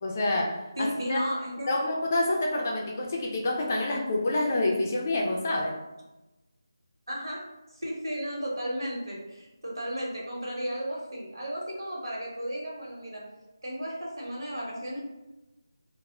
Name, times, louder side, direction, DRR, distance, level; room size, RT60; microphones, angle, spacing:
voice 1, 0.0-1.2 1.7-5.8, left 2 dB, 30° left, -1 dB, 0.4 m, -27 dB
voice 2, 0.8-1.7 7.1-7.4 7.7-13.2 13.6-15.0, equal, 80° right, -4 dB, 1.0 m, -34 dB
2.1 x 2.0 x 3.5 m, 1.0 s
figure-of-eight pair, 165°, 2 cm